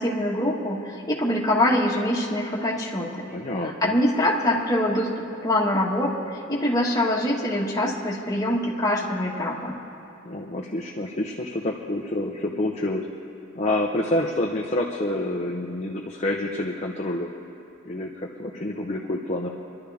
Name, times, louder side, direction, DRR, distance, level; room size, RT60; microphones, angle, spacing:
voice 1, 0.0-3.3 3.6-9.8, left 1 dB, 20° left, -4 dB, 1.6 m, -24 dB
voice 2, 3.3-4.0 10.3-13.1 13.5-17.3 17.8-19.5, left 1 dB, 35° left, -1 dB, 0.7 m, -28 dB
25.0 x 11.5 x 3.5 m, 2.7 s
head